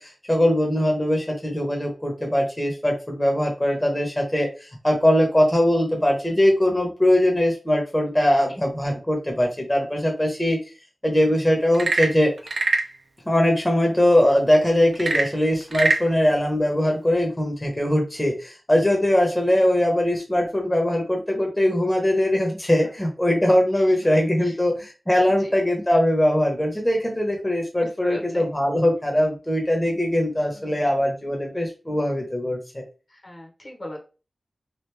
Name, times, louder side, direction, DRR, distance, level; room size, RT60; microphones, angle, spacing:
voice 1, 0.0-10.6 11.0-12.3 13.3-32.8, left 1 dB, 20° left, 0 dB, 1.0 m, -21 dB
Frog / Percussion / Wood, 11.7-13.0 14.9-16.1, right 3 dB, 80° right, 0.5 m, -23 dB
voice 2, 23.7-24.1 24.4-24.6 25.3-25.6 27.8-28.5 30.5-30.9 33.1-34.0, left 1 dB, 40° left, 0 dB, 1.1 m, -38 dB
3.1 x 2.5 x 3.3 m, 0.33 s
wide cardioid pair, 65°, 0 cm